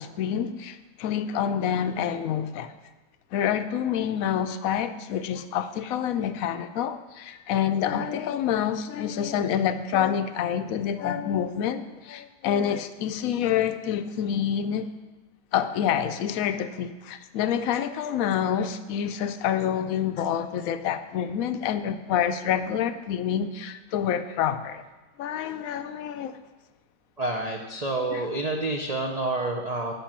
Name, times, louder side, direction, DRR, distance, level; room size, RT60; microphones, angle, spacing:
voice 1, 0.0-2.7 3.3-14.9 15.5-24.8 25.2-26.4 28.1-28.3, left 9 dB, 70° left, 0.9 m, -27 dB
voice 2, 27.2-29.9, right 2 dB, 75° right, 0.3 m, -28 dB
11.0 x 5.3 x 7.4 m
omnidirectional pair, 1.9 m